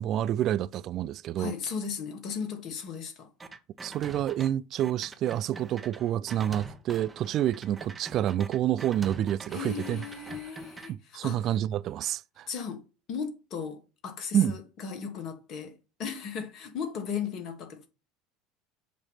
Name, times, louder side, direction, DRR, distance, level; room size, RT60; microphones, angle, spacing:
voice 1, 0.0-1.5 3.8-10.0 10.9-12.5 14.3-14.6, right 11 dB, 50° right, 0.3 m, -28 dB
voice 2, 1.4-3.3 9.5-11.4 12.5-17.9, left 6 dB, 50° left, 2.0 m, -36 dB
sound 1, 3.4-4.5 4.8-10.9, right 3 dB, 20° right, 1.2 m, -45 dB
7.2 x 3.2 x 5.8 m
hypercardioid pair, 70°, 0 cm